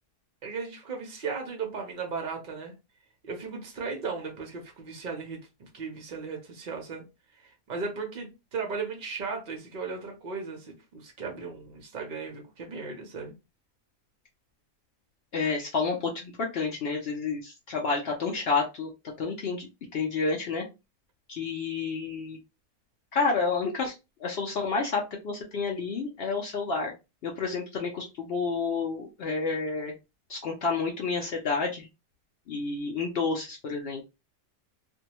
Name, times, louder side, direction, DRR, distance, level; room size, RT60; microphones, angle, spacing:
voice 1, 0.4-2.7 3.2-7.0 7.4-13.3, right 5 dB, 60° right, 0.5 m, -36 dB
voice 2, 15.3-18.9 19.2-20.6 21.3-22.4 23.1-23.9 24.2-26.9 27.2-29.9 30.3-31.9 32.5-34.0, left 4 dB, 85° left, 0.5 m, -30 dB
2.6 x 2.2 x 2.9 m
omnidirectional pair, 1.7 m